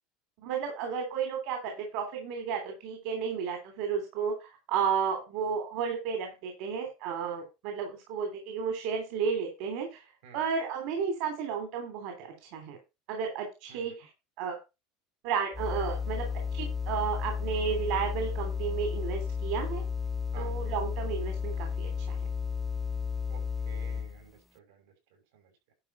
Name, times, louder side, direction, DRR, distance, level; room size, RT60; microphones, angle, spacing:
voice 1, 0.4-10.0 10.3-12.8 13.1-14.1 14.4-14.6 15.2-16.2 16.5-19.8 20.3-22.2, right 6 dB, 60° right, 4 dB, 3.1 m, -32 dB
sound 1, 15.5-24.2, left 6 dB, 10° left, 0.6 m, -33 dB
voice 2, 23.3-25.7, right 7 dB, 85° right, 3 dB, 5.7 m, -53 dB
11.5 x 5.0 x 5.5 m, 0.26 s
supercardioid pair, 145°, 0 cm